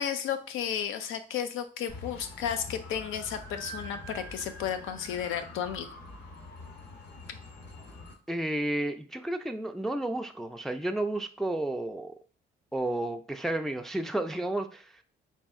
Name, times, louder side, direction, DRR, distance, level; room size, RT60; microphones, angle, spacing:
voice 1, 0.0-5.9, left 8 dB, 85° left, 9 dB, 0.6 m, -33 dB
sound 1, 1.9-8.1, left 2 dB, 55° left, 1.2 m, -45 dB
voice 2, 8.3-12.1 12.7-15.0, right 1 dB, ahead, 5 dB, 0.3 m, -32 dB
4.1 x 2.4 x 3.5 m, 0.41 s
cardioid pair, 90°, 20 cm